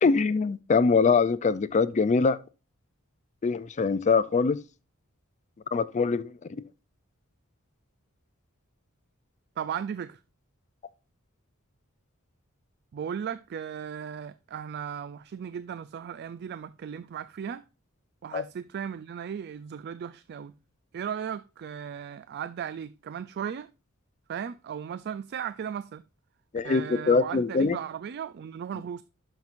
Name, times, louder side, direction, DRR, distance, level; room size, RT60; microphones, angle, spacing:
voice 1, 0.0-2.4 3.4-4.6 5.7-6.6 18.3-18.4 26.5-27.8, left 4 dB, 35° left, 0.4 m, -23 dB
voice 2, 9.6-10.2 12.9-17.6 18.2-20.5 20.9-23.7 24.3-26.0 26.6-29.0, right 8 dB, 50° right, 0.3 m, -36 dB
11.5 x 5.9 x 2.5 m
head